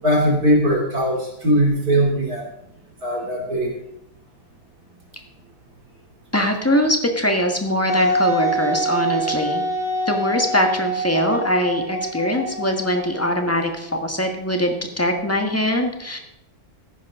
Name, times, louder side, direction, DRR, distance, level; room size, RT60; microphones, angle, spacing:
voice 1, 0.0-2.5 3.0-3.7, equal, 70° right, -1 dB, 3.5 m, -19 dB
voice 2, 6.3-9.6 10.1-16.2, equal, 10° left, 3 dB, 1.3 m, -22 dB
Wind instrument woodwind instrument, 7.9-13.5, equal, 35° left, 2.0 m, -25 dB
14.5 x 10.5 x 3.7 m, 0.79 s
omnidirectional pair, 1.7 m